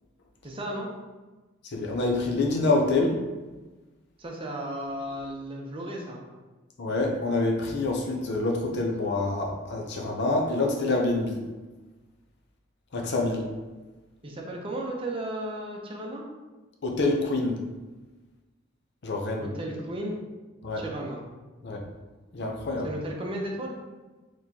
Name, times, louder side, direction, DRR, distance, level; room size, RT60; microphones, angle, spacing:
voice 1, 0.4-0.9 4.2-6.2 14.2-16.3 19.4-20.2 20.8-21.2 22.8-23.8, right 1 dB, 25° right, -1 dB, 0.6 m, -34 dB
voice 2, 1.7-3.2 6.8-11.4 12.9-13.5 16.8-17.6 19.0-19.5 20.6-20.8 21.6-21.8 22.3-22.9, left 2 dB, 60° left, 1 dB, 0.6 m, -26 dB
4.2 x 3.0 x 2.7 m, 1.2 s
head